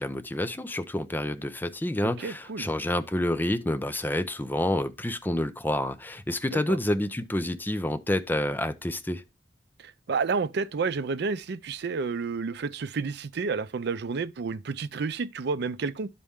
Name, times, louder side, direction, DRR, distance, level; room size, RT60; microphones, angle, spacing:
voice 1, 0.0-9.2, left 1 dB, 10° left, 0.5 m, -28 dB
voice 2, 2.0-2.7 6.5-6.8 9.8-16.1, right 4 dB, 65° right, 0.5 m, -30 dB
11.5 x 4.2 x 3.6 m
head